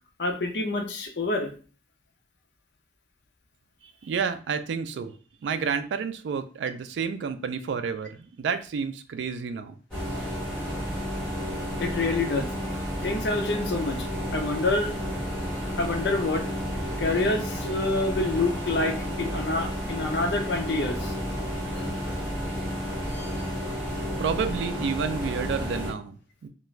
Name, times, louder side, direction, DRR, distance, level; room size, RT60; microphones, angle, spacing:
voice 1, 0.2-1.5 10.1-10.3 11.8-12.5 13.0-14.1 14.3-14.9 15.8-16.4 17.0-21.1 21.7-22.2, left 2 dB, 75° left, 4 dB, 0.5 m, -27 dB
voice 2, 3.8-5.2 5.4-9.8 24.2-26.5, right 6 dB, 80° right, 10 dB, 0.3 m, -30 dB
sound 1, 9.9-25.9, equal, 5° left, 1.3 m, -31 dB
2.4 x 2.2 x 3.0 m, 0.39 s
head